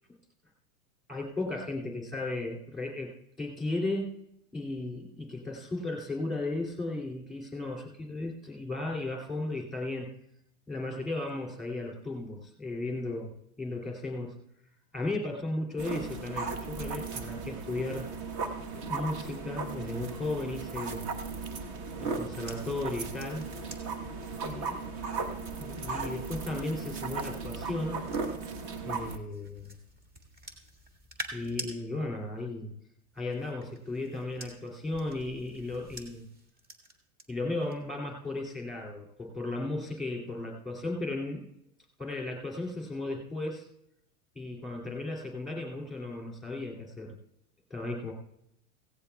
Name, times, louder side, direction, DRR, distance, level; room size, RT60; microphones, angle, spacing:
voice 1, 1.1-4.2 4.5-10.1 10.7-14.4 14.9-18.1 18.7-21.1 22.0-23.5 24.4-24.9 25.6-28.0 28.9-29.7 31.3-32.7 33.1-36.3 37.3-41.5 42.0-43.7 44.3-47.2 47.7-48.1, left 2 dB, ahead, -1 dB, 2.4 m, -35 dB
sound 1, 15.8-29.2, right 4 dB, 35° right, 1.2 m, -36 dB
sound 2, 21.1-28.7 29.3-31.7 33.0-37.2 37.6-38.0, right 1 dB, 20° right, 1.7 m, -48 dB
16.5 x 16.0 x 2.3 m, 0.78 s
supercardioid pair, 145°, 44 cm